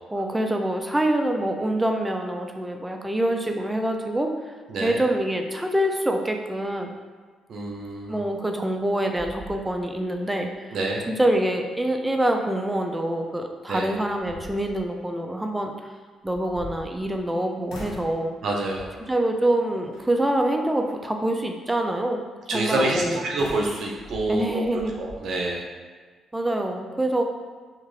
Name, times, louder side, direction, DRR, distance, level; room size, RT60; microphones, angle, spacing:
voice 1, 0.1-4.3 4.8-6.9 8.1-10.8 11.1-15.9 16.2-18.4 19.1-22.2 22.5-23.2 24.3-24.9 26.3-27.2, right 1 dB, 10° right, 3 dB, 0.3 m, -25 dB
voice 2, 7.5-8.2 10.7-11.1 13.7-13.9 18.4-18.9 22.5-25.6, right 2 dB, 65° right, -1 dB, 0.6 m, -27 dB
sound 1, 8.7-8.8 9.1-10.1 10.5-10.6 13.3-13.4 14.0-14.9 16.2-17.3 17.7-18.2 18.7-19.1 19.9-20.4 23.4-25.2, left 1 dB, 80° left, 0.7 m, -42 dB
2.4 x 2.4 x 3.2 m, 1.5 s
cardioid pair, 90°, 0 cm